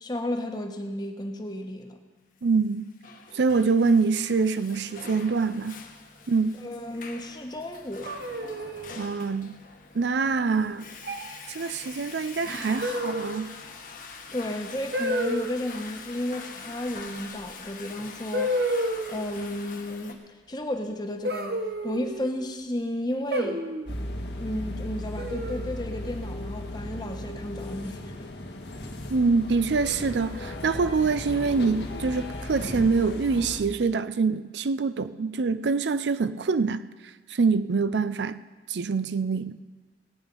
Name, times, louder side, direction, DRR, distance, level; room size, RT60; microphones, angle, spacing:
voice 1, 0.0-2.0 6.6-8.1 14.3-18.6 19.1-20.2 20.5-21.5 21.8-23.6 24.4-28.3, left 1 dB, 25° left, 1.1 m, -33 dB
voice 2, 2.4-2.9 3.3-5.8 6.3-6.6 9.0-9.6 9.9-10.9 11.5-13.5 29.1-36.8 37.3-38.4 38.7-39.6, right 4 dB, 85° right, 0.5 m, -25 dB
Water / Toilet flush, 2.6-20.1, left 4 dB, 50° left, 1.3 m, -44 dB
sound 1, 8.1-8.9 10.2-10.6 11.0-11.4 12.8-13.4 14.9-15.5 17.4-17.5 18.3-19.3 21.2-22.3 23.3-23.9 25.2-25.8, equal, 65° right, 1.1 m, -30 dB
sound 2, 23.9-33.6, left 1 dB, 80° left, 1.8 m, -36 dB
18.0 x 9.1 x 5.4 m
head